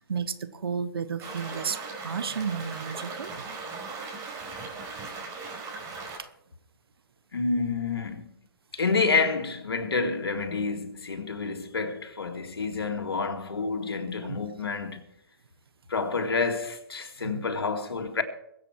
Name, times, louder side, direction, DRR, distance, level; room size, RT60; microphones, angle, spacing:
voice 1, 0.0-3.4 6.1-6.3 14.2-14.4 17.2-17.5, right 6 dB, 75° right, 1.2 m, -33 dB
sound 1, 1.2-6.2, right 4 dB, 25° right, 4.7 m, -38 dB
voice 2, 7.3-8.3 8.7-15.0 15.9-18.2, left 4 dB, 85° left, 2.2 m, -28 dB
22.5 x 8.2 x 4.6 m
hypercardioid pair, 140°, 13 cm